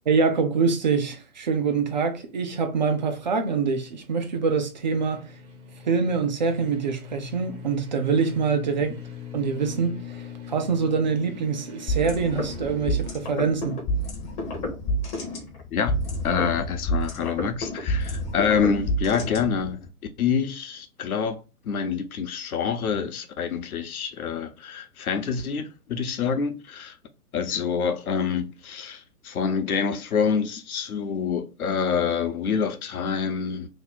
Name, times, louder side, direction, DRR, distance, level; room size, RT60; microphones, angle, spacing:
voice 1, 0.1-5.3 5.8-8.9 9.3-13.8, right 5 dB, 30° right, 0.4 m, -25 dB
sound 1, 1.6-13.1, left 6 dB, 50° right, 1.1 m, -42 dB
sound 2, 11.9-19.9, equal, 15° left, 0.6 m, -29 dB
voice 2, 16.2-19.8 20.2-21.4 21.6-27.0 27.3-33.7, left 6 dB, 70° left, 0.8 m, -26 dB
3.0 x 2.1 x 3.9 m
hypercardioid pair, 130°, 45 cm